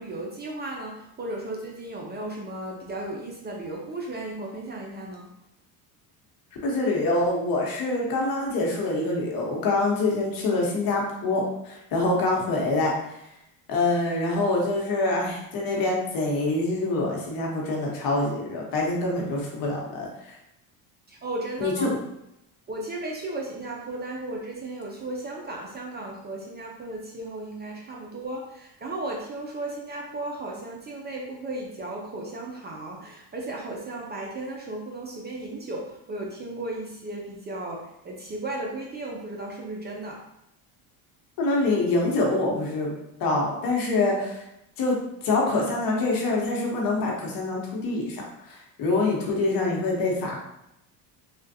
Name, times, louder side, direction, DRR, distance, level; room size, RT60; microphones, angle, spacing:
voice 1, 0.0-5.3 21.1-21.9 22.7-40.2, right 2 dB, 25° right, -1 dB, 0.5 m, -35 dB
voice 2, 6.6-12.9 13.7-20.3 21.6-22.0 41.4-42.9 43.2-44.4 44.8-45.0 45.2-50.4, left 2 dB, 55° left, -1 dB, 1.0 m, -25 dB
3.4 x 2.4 x 2.7 m, 0.83 s
supercardioid pair, 100°, 42 cm